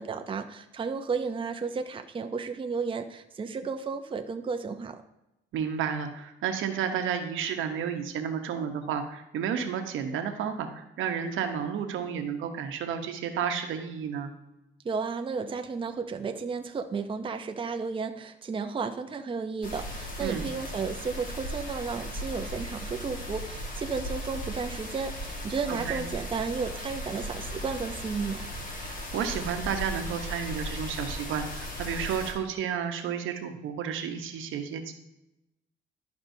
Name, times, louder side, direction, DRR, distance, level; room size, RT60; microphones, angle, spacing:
voice 1, 0.0-5.0 14.8-28.5, right 5 dB, 25° right, 6 dB, 0.5 m, -33 dB
voice 2, 5.5-14.3 20.2-20.5 25.7-26.0 28.8-34.9, right 7 dB, 85° right, 6 dB, 0.9 m, -32 dB
sound 1, 19.6-32.3, equal, 40° left, 1.6 m, -37 dB
11.5 x 5.3 x 2.7 m, 0.91 s
cardioid pair, 90°, 20 cm